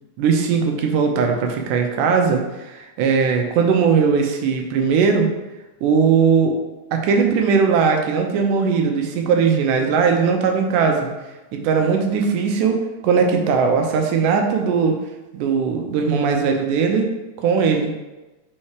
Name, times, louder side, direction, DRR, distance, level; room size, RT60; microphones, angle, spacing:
voice 1, 0.2-5.3 5.8-6.6 6.9-11.1 11.5-15.0 15.3-17.1 17.4-17.9, right 5 dB, 90° right, 3 dB, 2.4 m, -19 dB
5.5 x 4.3 x 4.8 m, 1.1 s
omnidirectional pair, 3.5 m